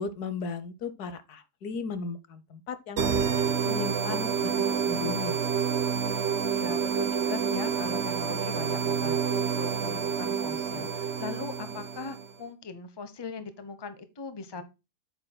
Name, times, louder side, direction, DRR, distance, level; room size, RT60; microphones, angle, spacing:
voice 1, 0.0-5.7, left 4 dB, 80° left, 1.5 m, -36 dB
sound 1, 3.0-12.3, right 6 dB, 50° right, 1.1 m, -28 dB
voice 2, 6.5-14.6, left 4 dB, 20° left, 0.8 m, -39 dB
8.6 x 7.8 x 2.2 m
omnidirectional pair, 1.7 m